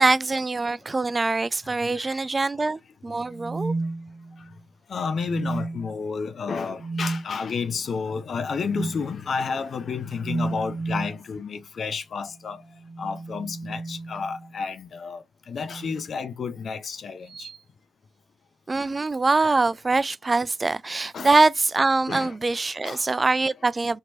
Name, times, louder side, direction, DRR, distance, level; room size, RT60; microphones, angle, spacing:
voice 1, 0.0-3.7 18.7-24.0, right 3 dB, 35° right, 0.4 m, -23 dB
sound 1, 3.3-4.6 5.2-6.0 6.8-7.3 8.7-9.0 10.2-11.2 12.7-14.5 15.6-16.1 17.3-17.6, right 3 dB, 60° right, 0.8 m, -32 dB
voice 2, 4.9-12.6 13.0-17.5 21.1-21.3 22.1-22.3 22.8-23.0, left 5 dB, 55° left, 0.6 m, -31 dB
4.4 x 2.8 x 2.5 m
hypercardioid pair, 40°, 0 cm